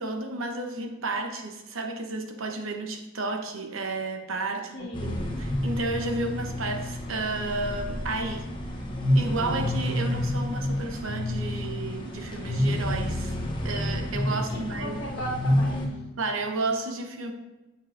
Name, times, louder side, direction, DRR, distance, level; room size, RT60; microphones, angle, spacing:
voice 1, 0.0-8.5 9.1-13.3 13.6-15.0 16.2-17.3, right 2 dB, 80° right, 5 dB, 0.9 m, -32 dB
voice 2, 4.7-5.1 14.3-16.0, right 1 dB, 55° left, -3 dB, 1.5 m, -37 dB
sound 1, 4.9-15.9, left 1 dB, 25° left, 0.9 m, -29 dB
7.2 x 6.8 x 2.6 m, 1.1 s
head